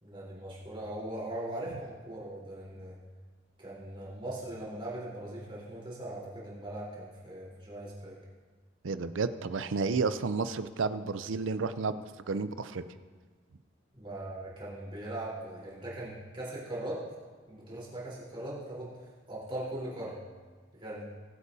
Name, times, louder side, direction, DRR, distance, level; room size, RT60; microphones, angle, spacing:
voice 1, 0.0-2.9 3.6-8.2 13.9-17.0 17.5-20.2 20.7-21.1, right 1 dB, 25° right, -7 dB, 3.9 m, -40 dB
voice 2, 8.8-12.8, right 4 dB, 85° right, 12 dB, 0.5 m, -31 dB
20.0 x 8.3 x 2.7 m, 1.5 s
head